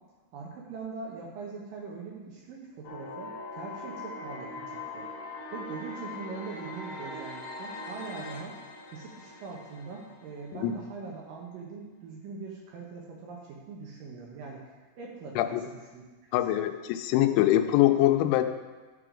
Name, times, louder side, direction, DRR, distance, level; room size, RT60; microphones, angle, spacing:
voice 1, 0.3-5.1 5.5-8.6 8.9-16.0 16.3-16.7, right 4 dB, 75° right, -2 dB, 2.1 m, -42 dB
sound 1, 2.8-10.8, left 2 dB, 75° left, 2.0 m, -41 dB
voice 2, 16.3-18.4, left 14 dB, 90° left, 8 dB, 3.0 m, -23 dB
13.0 x 4.9 x 5.0 m, 1.3 s
omnidirectional pair, 5.3 m